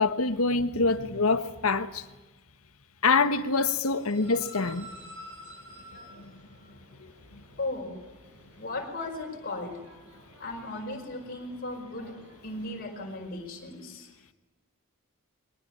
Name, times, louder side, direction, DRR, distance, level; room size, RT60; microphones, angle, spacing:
voice 1, 0.0-2.0 3.0-4.9, left 4 dB, 75° left, 1.4 m, -25 dB
sound 1, 3.5-13.2, equal, 55° right, 6.7 m, -51 dB
voice 2, 7.6-8.0 8.5-9.8 10.4-12.1 12.4-14.1, left 2 dB, 40° left, 5.4 m, -36 dB
22.5 x 19.5 x 8.8 m
head